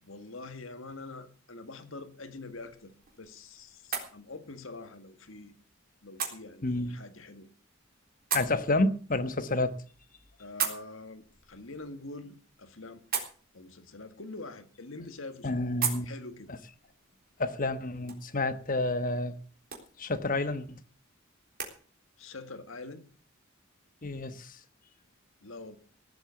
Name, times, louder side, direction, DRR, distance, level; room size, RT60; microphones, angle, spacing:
voice 1, 0.0-5.6 6.0-7.5 10.4-13.0 13.5-15.7 16.0-16.6 22.2-23.1 25.4-25.8, left 3 dB, 70° left, 1.8 m, -45 dB
sound 1, 2.3-21.7, right 7 dB, 45° right, 3.7 m, -41 dB
voice 2, 6.6-7.0 8.3-9.8 15.4-16.0 17.4-19.3 20.0-20.8 24.0-24.6, left 2 dB, 40° left, 1.2 m, -29 dB
17.5 x 8.0 x 6.9 m
head